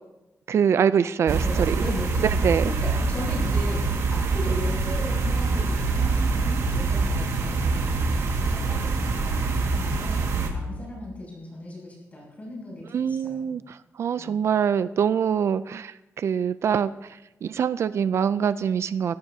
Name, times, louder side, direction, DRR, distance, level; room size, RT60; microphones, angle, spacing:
voice 1, 0.5-1.8 2.2-2.7 12.9-19.2, right 7 dB, 60° right, 14 dB, 0.4 m, -24 dB
voice 2, 1.2-2.3 2.6-13.5 14.2-14.4, left 1 dB, 30° left, -3 dB, 6.7 m, -37 dB
sound 1, 1.3-10.5, right 3 dB, 75° right, 1.8 m, -25 dB
22.0 x 16.0 x 2.8 m, 0.98 s
wide cardioid pair, 175°, 5 cm